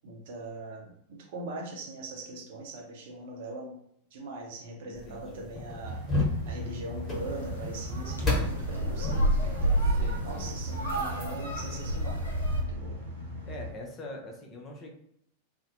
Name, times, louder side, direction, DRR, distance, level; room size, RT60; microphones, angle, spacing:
voice 1, 0.0-3.8 4.1-6.0 6.4-10.0 10.2-13.0, right 2 dB, 55° right, 0 dB, 0.6 m, -41 dB
voice 2, 4.9-5.5 9.8-10.5 13.4-14.9, left 1 dB, 30° left, 2 dB, 0.5 m, -44 dB
sound 1, 4.9-11.8, left 2 dB, 10° left, 1.3 m, -34 dB
sound 2, 5.8-13.7, left 1 dB, 80° right, 0.9 m, -39 dB
sound 3, 7.1-12.6, right 1 dB, 85° left, 0.6 m, -30 dB
2.5 x 2.1 x 2.5 m, 0.72 s
figure-of-eight pair, 90°, 0 cm